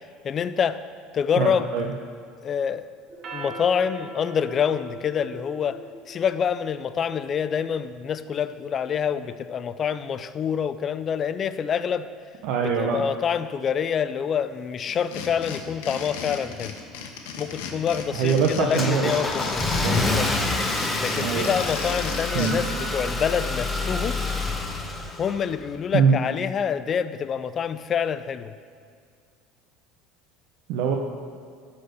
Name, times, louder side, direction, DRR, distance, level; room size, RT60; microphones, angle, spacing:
voice 1, 0.2-0.8 1.1-1.7 2.4-2.9 3.3-5.8 6.1-12.1 12.8-16.7 17.4-20.3 21.0-24.2 25.2-28.5, left 7 dB, 35° left, 13 dB, 0.4 m, -26 dB
voice 2, 1.4-1.9 12.4-13.0 18.1-19.1 19.7-20.0 21.2-21.5 22.3-22.5 25.9-26.2 30.7-31.0, right 6 dB, 65° right, 1 dB, 0.7 m, -23 dB
sound 1, 3.1-7.9, right 1 dB, 40° right, 1.1 m, -41 dB
sound 2, 14.9-22.5, left 6 dB, 90° left, 1.0 m, -35 dB
Car / Engine starting, 17.5-25.7, left 2 dB, 10° left, 0.9 m, -27 dB
11.5 x 4.4 x 6.4 m, 2.2 s
supercardioid pair, 125°, 0 cm